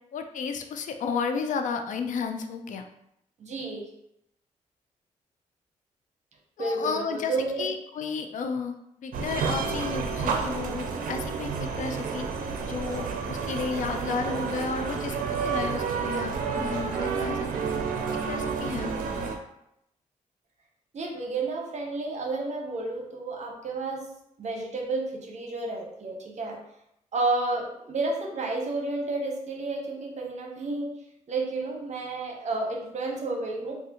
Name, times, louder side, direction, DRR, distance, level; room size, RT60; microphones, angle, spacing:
voice 1, 0.1-2.9 6.6-17.5 18.2-19.3, left 5 dB, 70° left, 6 dB, 0.4 m, -33 dB
voice 2, 3.4-3.9 6.6-7.7 20.9-24.1 24.4-26.6 27.1-30.9 31.3-33.7, right 3 dB, 55° right, 1 dB, 0.8 m, -31 dB
sound 1, 9.1-19.4, right 5 dB, 90° right, 0.4 m, -30 dB
3.3 x 2.4 x 2.8 m, 0.78 s
cardioid pair, 75°, 14 cm